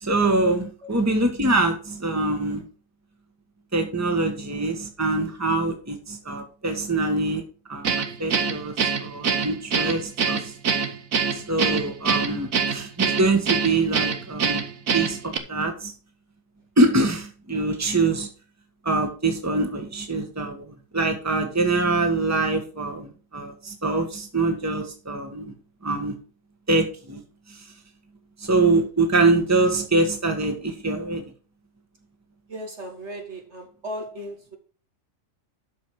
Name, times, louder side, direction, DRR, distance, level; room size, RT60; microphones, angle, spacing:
voice 1, 0.0-2.6 3.7-7.4 7.7-7.9 8.2-8.7 9.0-10.5 11.3-14.6 14.9-15.9 16.8-18.3 18.8-20.6 20.9-25.5 25.8-26.2 26.7-27.2 28.4-31.2, right 2 dB, 10° right, 1.7 m, -24 dB
Guitar, 7.8-15.4, right 6 dB, 90° right, 1.6 m, -24 dB
voice 2, 32.5-34.6, equal, 55° right, 2.3 m, -36 dB
12.5 x 5.2 x 4.8 m
omnidirectional pair, 1.4 m